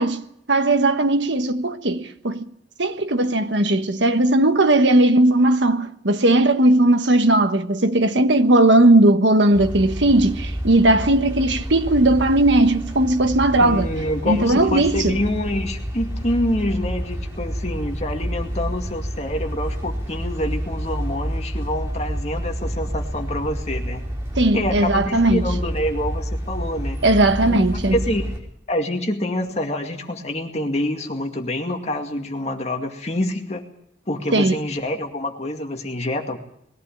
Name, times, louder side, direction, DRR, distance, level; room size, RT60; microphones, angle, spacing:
voice 1, 0.0-2.5 2.8-13.9 14.3-15.2 24.4-25.4 27.0-28.0 34.3-34.6, right 2 dB, 75° right, 1.4 m, -17 dB
sound 1, 9.5-28.4, equal, 15° right, 4.7 m, -29 dB
voice 2, 13.6-24.0 24.5-27.0 27.5-28.2 28.7-33.6 34.1-36.4, left 1 dB, 35° left, 2.2 m, -26 dB
21.0 x 15.5 x 8.8 m
head